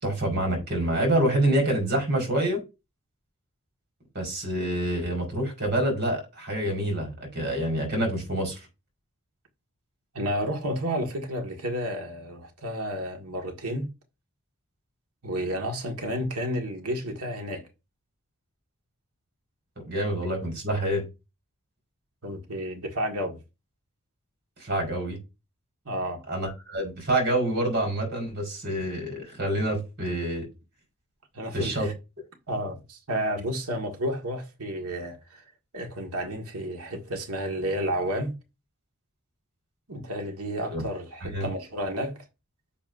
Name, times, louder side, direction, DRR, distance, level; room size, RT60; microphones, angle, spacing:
voice 1, 0.0-2.6 4.1-8.6 19.8-21.0 24.6-25.2 26.3-30.5 31.5-31.9 40.7-40.8 41.2-41.5, right 1 dB, 50° right, 4.8 m, -27 dB
voice 2, 10.1-13.9 15.2-17.6 22.2-23.4 25.9-26.2 31.3-31.9 32.5-35.4 35.7-38.4 39.9-42.2, equal, 85° right, 1.8 m, -31 dB
10.5 x 7.1 x 2.6 m
head